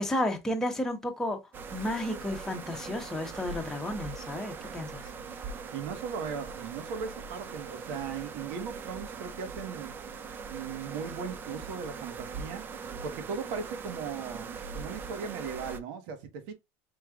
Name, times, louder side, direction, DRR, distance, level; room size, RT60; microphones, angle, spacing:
voice 1, 0.0-1.4 1.7-5.1, left 1 dB, 5° left, 1.1 m, -32 dB
sound 1, 1.5-15.8, right 5 dB, 30° right, 0.5 m, -41 dB
voice 2, 5.7-10.0 10.4-12.6 13.0-16.5, right 6 dB, 70° right, 1.2 m, -38 dB
5.4 x 3.2 x 2.4 m
cardioid pair, 135°, 7 cm